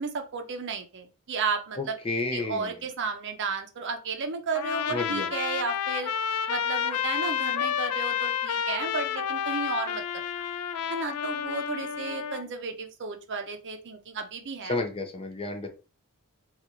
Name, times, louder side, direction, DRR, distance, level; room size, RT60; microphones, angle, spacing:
voice 1, 0.0-2.0 2.3-6.1 6.5-10.0 10.4-10.5 10.9-14.8, right 5 dB, 55° right, 6 dB, 0.6 m, -33 dB
voice 2, 1.8-2.7 4.9-5.3 14.6-15.7, left 3 dB, 25° left, 4 dB, 0.6 m, -31 dB
Trumpet, 4.5-12.4, left 8 dB, 75° left, 0.3 m, -30 dB
3.9 x 2.4 x 2.9 m, 0.33 s
head